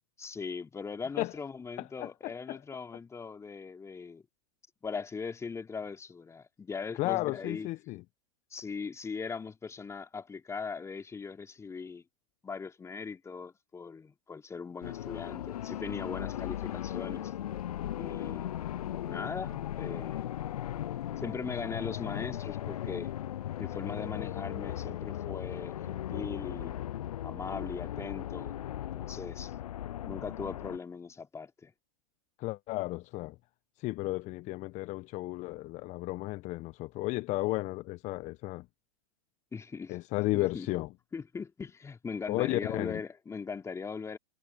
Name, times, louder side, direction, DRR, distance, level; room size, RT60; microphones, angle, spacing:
voice 1, 0.2-4.2 4.8-7.7 8.5-12.0 12.4-17.3 17.9-18.7 19.0-20.2 21.2-23.1 23.6-26.8 27.2-28.6 29.0-29.5 30.1-31.7 39.5-40.0 40.3-40.7 41.1-44.2, left 5 dB, 15° left, 3.7 m, -40 dB
voice 2, 1.8-2.6 6.9-8.0 32.4-33.3 33.8-38.7 39.9-40.9 42.3-43.0, left 20 dB, 35° left, 1.3 m, -33 dB
sound 1, 14.8-30.8, left 12 dB, 70° left, 0.6 m, -37 dB
figure-of-eight pair, 105°, 20 cm